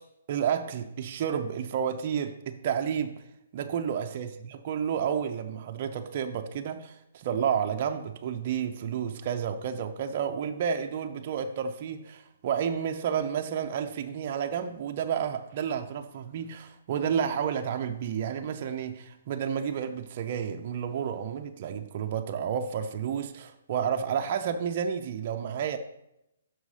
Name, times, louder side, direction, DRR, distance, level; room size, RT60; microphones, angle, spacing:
voice 1, 0.3-3.2 3.5-25.8, right 8 dB, 35° right, 0.5 m, -31 dB
6.1 x 5.3 x 4.8 m
hypercardioid pair, 170°, 0 cm